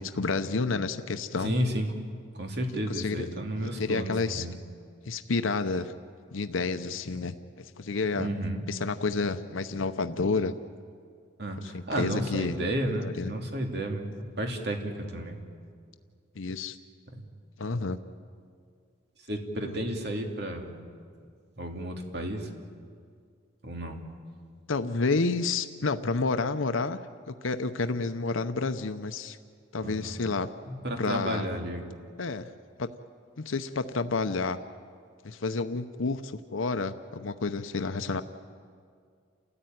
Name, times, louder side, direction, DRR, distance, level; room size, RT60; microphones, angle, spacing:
voice 1, 0.0-1.5 2.9-3.3 3.6-4.4 5.1-5.9 6.3-8.3 8.7-10.5 11.6-12.5 12.9-13.3 16.4-16.8 17.6-18.0 19.6-19.8 24.7-27.0 27.3-29.4 29.7-30.5 31.0-31.5 32.2-32.5 32.8-32.9 33.4-34.6 35.2-38.2, left 3 dB, 80° left, 9 dB, 0.8 m, -30 dB
voice 2, 1.4-1.9 2.4-4.5 8.2-8.6 11.4-15.4 17.1-17.2 17.6-17.8 19.3-20.8 21.6-22.5 23.6-24.0 29.8-30.1 30.7-31.8, right 1 dB, 55° right, 3 dB, 2.6 m, -32 dB
29.5 x 14.0 x 9.3 m, 2.2 s
head